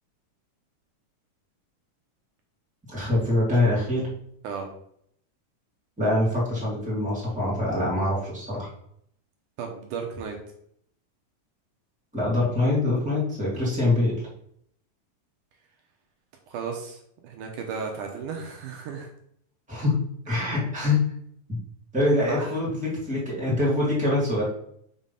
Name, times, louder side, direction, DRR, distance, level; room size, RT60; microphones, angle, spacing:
voice 1, 2.9-4.1 6.0-8.7 12.1-14.2 19.7-19.9 20.3-21.0 21.5-21.6 21.9-24.4, left 2 dB, ahead, -7 dB, 2.3 m, -24 dB
voice 2, 9.6-10.4 16.5-19.1 22.3-22.6, right 5 dB, 75° right, 2 dB, 2.4 m, -34 dB
6.3 x 3.9 x 5.6 m, 0.69 s
omnidirectional pair, 3.8 m